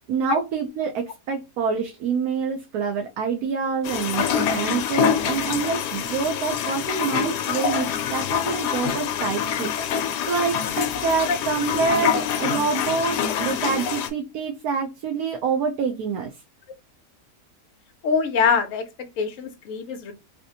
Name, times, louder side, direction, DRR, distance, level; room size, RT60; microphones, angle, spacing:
voice 1, 0.1-16.3, right 5 dB, 70° right, 1.1 m, -26 dB
sound 1, 3.8-14.1, left 8 dB, 90° left, 1.2 m, -26 dB
voice 2, 18.0-20.1, left 6 dB, 60° left, 0.9 m, -24 dB
3.2 x 2.9 x 2.7 m
omnidirectional pair, 1.7 m